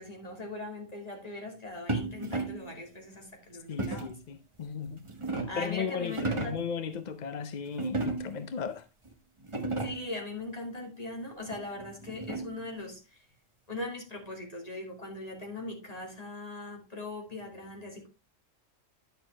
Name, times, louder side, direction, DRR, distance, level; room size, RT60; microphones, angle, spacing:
voice 1, 0.0-4.1 5.5-6.6 9.7-13.2 13.7-18.1, left 2 dB, 30° left, 2.6 m, -40 dB
sound 1, 1.9-2.7 3.8-4.2 4.9-5.7 6.1-6.7 7.8-8.5 9.1-9.2 9.4-10.1 11.5-12.7, right 2 dB, 25° right, 1.2 m, -34 dB
voice 2, 3.7-5.0 5.5-8.8, left 6 dB, 50° left, 0.5 m, -36 dB
10.5 x 6.9 x 3.3 m
omnidirectional pair, 1.3 m